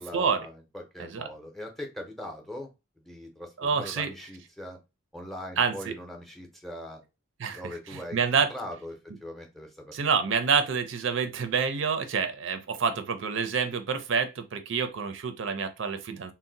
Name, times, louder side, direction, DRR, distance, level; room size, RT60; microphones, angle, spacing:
voice 1, 0.0-4.8 5.1-7.0 7.5-10.3, left 1 dB, ahead, 0.6 m, -41 dB
voice 2, 3.6-4.1 5.6-5.9 7.4-7.6 7.9-8.5 9.9-16.3, right 6 dB, 70° right, 0.5 m, -27 dB
2.6 x 2.1 x 3.8 m
head